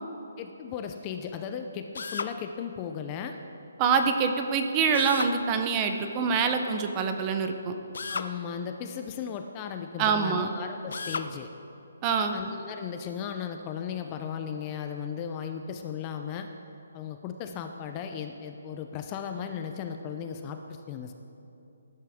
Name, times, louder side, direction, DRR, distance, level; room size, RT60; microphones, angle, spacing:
voice 1, 0.4-3.4 8.1-11.5 12.3-16.5 16.9-21.1, left 7 dB, 20° left, 6 dB, 0.5 m, -36 dB
Drill, 1.9-2.4 4.9-5.4 7.9-8.3 10.9-11.3, left 4 dB, 70° left, 0.6 m, -33 dB
voice 2, 3.8-7.7 10.0-10.5 12.0-12.4, right 5 dB, 20° right, 6 dB, 0.7 m, -25 dB
19.0 x 11.0 x 3.6 m, 2.8 s
hypercardioid pair, 170°, 0 cm